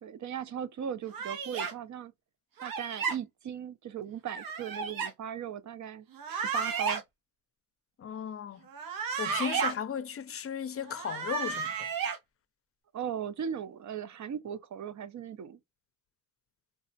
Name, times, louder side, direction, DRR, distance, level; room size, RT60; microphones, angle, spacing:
voice 1, 0.0-2.1 2.6-7.0 12.9-15.6, right 8 dB, 60° right, 0.6 m, -38 dB
Karate chop fighting sounds, 1.1-1.7 2.6-3.2 4.3-5.1 6.1-7.0 8.7-9.7 10.9-12.2, right 6 dB, 90° right, 0.8 m, -33 dB
voice 2, 8.0-8.6 9.2-11.7, left 8 dB, 45° left, 0.5 m, -35 dB
3.6 x 2.0 x 2.6 m
cardioid pair, 65°, 33 cm